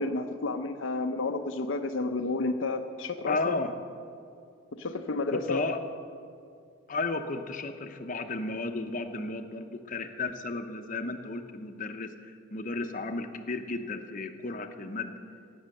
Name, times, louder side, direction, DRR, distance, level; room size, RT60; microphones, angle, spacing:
voice 1, 0.0-3.5 4.7-5.6, left 3 dB, 65° left, 6 dB, 0.6 m, -31 dB
voice 2, 3.3-3.7 5.3-5.8 6.9-15.1, left 3 dB, 40° left, 7 dB, 0.8 m, -33 dB
16.5 x 8.7 x 6.6 m, 2.4 s
head